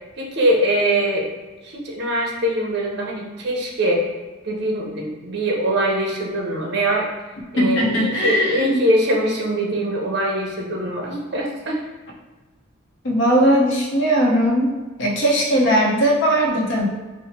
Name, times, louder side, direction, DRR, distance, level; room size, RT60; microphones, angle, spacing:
voice 1, 0.2-1.3 1.6-4.1 4.4-7.1 7.5-11.8, right 1 dB, 55° right, -1 dB, 0.6 m, -22 dB
voice 2, 7.6-8.9 13.0-14.7 15.0-16.9, equal, 65° left, -1 dB, 0.7 m, -18 dB
2.9 x 2.0 x 4.0 m, 1.3 s
head